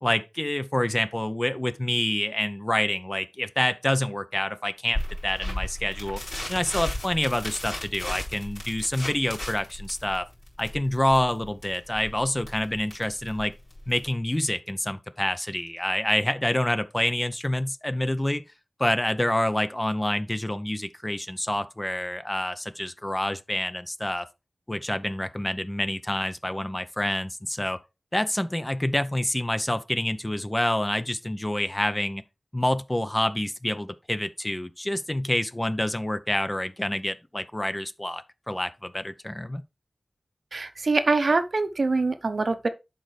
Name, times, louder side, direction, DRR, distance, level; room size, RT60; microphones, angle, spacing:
voice 1, 0.0-6.2 6.5-10.2 10.6-13.5 13.9-18.4 18.8-24.3 24.7-27.8 28.1-32.2 32.5-39.6, left 1 dB, 20° left, 0.5 m, -27 dB
sound 1, 4.9-14.1, left 1 dB, 55° left, 4.2 m, -35 dB
voice 2, 40.5-42.7, right 3 dB, 65° right, 0.7 m, -24 dB
10.5 x 3.9 x 3.2 m
wide cardioid pair, 75°, 0 cm